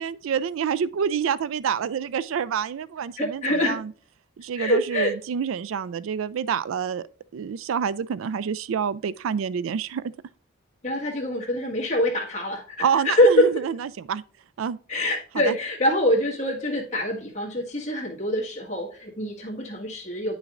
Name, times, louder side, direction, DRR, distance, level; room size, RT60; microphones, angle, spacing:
voice 1, 0.0-3.9 4.4-7.0 7.3-10.0 12.8-14.2 14.6-14.8 15.5-15.6, right 7 dB, 90° right, 0.4 m, -27 dB
voice 2, 3.2-3.8 4.6-5.1 10.8-13.6 14.9-20.4, left 1 dB, 35° left, 1.7 m, -24 dB
9.7 x 6.1 x 2.5 m
head